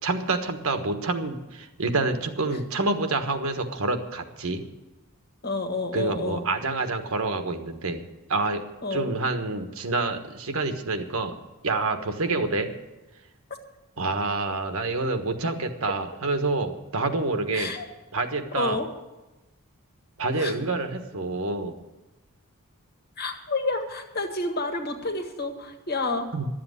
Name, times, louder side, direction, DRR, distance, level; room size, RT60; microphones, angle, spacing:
voice 1, 0.0-4.6 5.9-8.0 8.3-8.6 8.9-11.3 11.6-12.7 14.0-17.7 18.1-18.8 20.2-21.7 26.3-26.5, right 3 dB, 70° right, 7 dB, 1.3 m, -27 dB
voice 2, 5.4-6.4 8.8-9.1 17.5-17.9 18.5-18.9 20.4-20.5 23.2-26.3, left 2 dB, 45° left, 4 dB, 1.7 m, -29 dB
12.0 x 7.9 x 9.5 m, 1.1 s
head